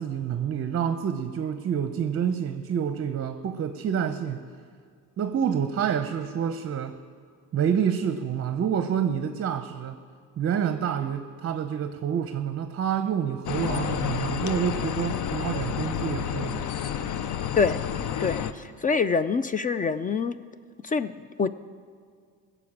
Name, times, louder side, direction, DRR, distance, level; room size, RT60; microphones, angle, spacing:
voice 1, 0.0-4.4 5.2-7.0 7.5-10.0 10.4-16.7, right 8 dB, 35° right, 9 dB, 0.7 m, -28 dB
sound 1, 13.5-18.5, left 9 dB, 50° left, 0.8 m, -30 dB
voice 2, 17.6-17.9 18.2-20.3 20.8-21.5, left 5 dB, 20° left, 15 dB, 0.4 m, -25 dB
17.0 x 6.9 x 8.6 m, 2.1 s
supercardioid pair, 90°, 39 cm